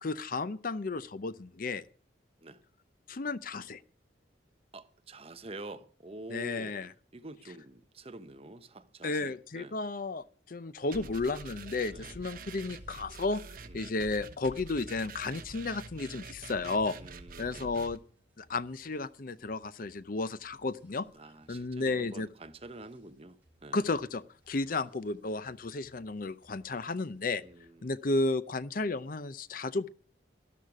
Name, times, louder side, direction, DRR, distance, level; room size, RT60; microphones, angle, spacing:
voice 1, 0.0-1.8 3.1-3.8 6.3-6.9 9.0-13.4 13.7-17.0 17.4-18.0 18.4-21.1 21.5-22.3 23.7-27.4 27.8-29.9, left 3 dB, 50° left, 0.6 m, -33 dB
voice 2, 4.7-6.8 7.1-9.8 11.9-12.2 13.6-13.9 17.0-17.8 21.1-23.9 27.4-28.0, right 2 dB, 30° right, 0.9 m, -47 dB
sound 1, 10.9-18.0, right 4 dB, 50° right, 1.2 m, -46 dB
sound 2, 12.5-27.7, equal, 10° right, 5.9 m, -68 dB
13.0 x 12.0 x 4.8 m
head